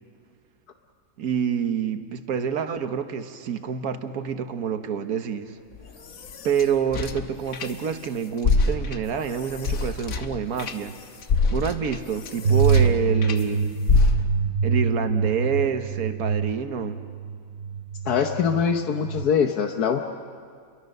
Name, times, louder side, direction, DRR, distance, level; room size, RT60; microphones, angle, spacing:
voice 1, 1.2-5.6 6.4-10.9 11.5-13.8 14.6-17.0, right 7 dB, 70° right, 8 dB, 1.6 m, -27 dB
sound 1, 5.7-8.1 8.4-13.4 13.9-14.6, left 3 dB, 65° left, 1.5 m, -26 dB
sound 2, 12.4-19.2, right 5 dB, 55° right, 1.3 m, -25 dB
voice 2, 18.0-20.0, left 7 dB, 80° left, 5 dB, 1.5 m, -23 dB
29.5 x 23.0 x 6.6 m, 2.1 s
omnidirectional pair, 1.6 m